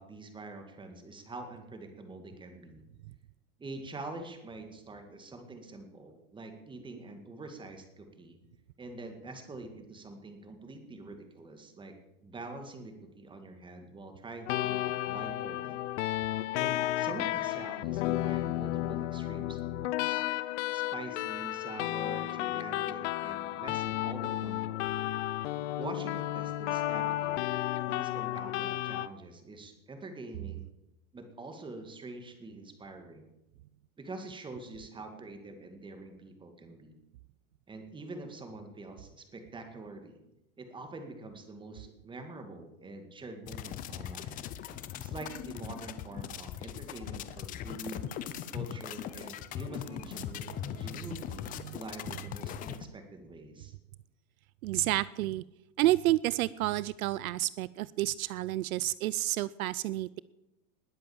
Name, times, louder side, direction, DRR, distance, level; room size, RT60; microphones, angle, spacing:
voice 1, 0.0-2.8 3.6-8.4 8.8-11.9 12.2-15.8 16.6-20.2 20.7-25.0 25.8-27.4 27.8-30.6 31.1-33.3 34.0-37.0 37.7-40.2 40.6-44.4 45.0-48.0 48.5-53.7, right 2 dB, 10° right, 6 dB, 2.1 m, -45 dB
sound 1, 14.5-29.1, left 15 dB, 50° left, 0.8 m, -33 dB
sound 2, 43.5-52.8, left 10 dB, 20° left, 0.6 m, -40 dB
voice 2, 54.6-55.4 55.8-60.2, right 16 dB, 70° right, 19 dB, 0.6 m, -30 dB
20.0 x 7.7 x 7.3 m, 0.94 s
supercardioid pair, 150°, 44 cm